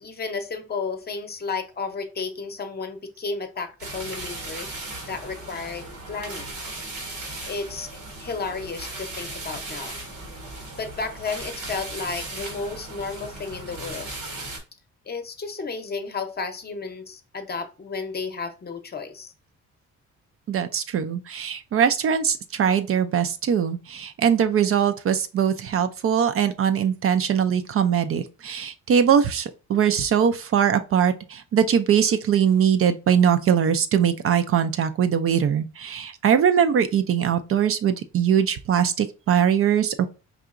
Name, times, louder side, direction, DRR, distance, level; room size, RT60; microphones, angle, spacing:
voice 1, 0.0-4.7 5.1-6.6 7.5-10.0 10.8-14.1 15.1-19.3, left 4 dB, 30° left, 0.7 m, -33 dB
sound 1, 3.8-14.6, right 2 dB, 85° right, 1.6 m, -37 dB
voice 2, 20.5-40.1, right 8 dB, 50° right, 0.4 m, -21 dB
4.7 x 2.8 x 2.4 m
cardioid pair, 90°, 30 cm